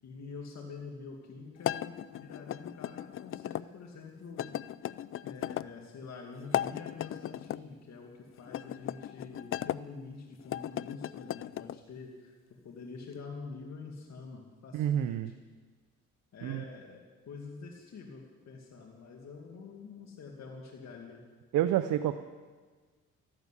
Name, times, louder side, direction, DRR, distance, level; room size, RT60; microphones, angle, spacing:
voice 1, 0.0-4.6 5.2-12.3 12.6-15.3 16.3-21.2, left 4 dB, 60° left, 0 dB, 2.3 m, -46 dB
sound 1, 1.6-3.6 4.4-5.7 6.4-7.6 8.5-9.8 10.4-11.8, left 11 dB, 45° left, 0.4 m, -36 dB
voice 2, 14.7-15.3 16.4-16.6 21.5-22.2, right 11 dB, 85° right, 10 dB, 0.7 m, -28 dB
13.5 x 12.0 x 8.3 m, 1.4 s
cardioid pair, 90°, 30 cm